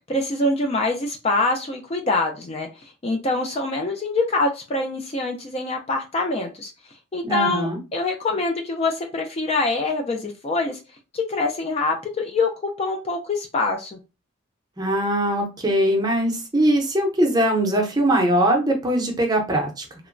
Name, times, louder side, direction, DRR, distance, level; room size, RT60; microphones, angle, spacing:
voice 1, 0.1-2.7 3.0-6.7 7.1-10.8 11.1-12.5 12.8-14.0, left 2 dB, 30° left, 0.3 m, -24 dB
voice 2, 7.2-7.8 14.8-19.8, right 1 dB, 20° right, 0.6 m, -21 dB
2.9 x 2.1 x 2.5 m
head